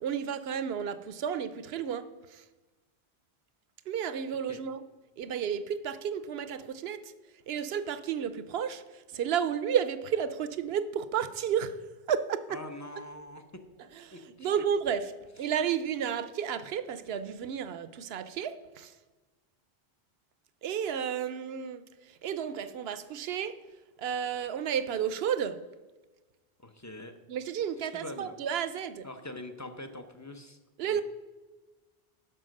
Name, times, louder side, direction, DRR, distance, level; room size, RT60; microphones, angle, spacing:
voice 1, 0.0-2.4 3.9-4.8 5.2-7.0 7.5-11.8 12.1-12.6 14.0-15.1 15.4-18.9 20.6-21.8 22.2-23.6 24.0-25.6 27.3-29.1 30.8-31.0, right 8 dB, 70° right, 13 dB, 0.8 m, -32 dB
voice 2, 12.5-13.4 14.1-14.6 15.4-15.5 26.6-27.1 27.9-28.3 29.0-30.6 30.9-31.0, left 1 dB, 20° left, 7 dB, 0.6 m, -43 dB
11.0 x 4.7 x 6.4 m, 1.2 s
omnidirectional pair, 1.1 m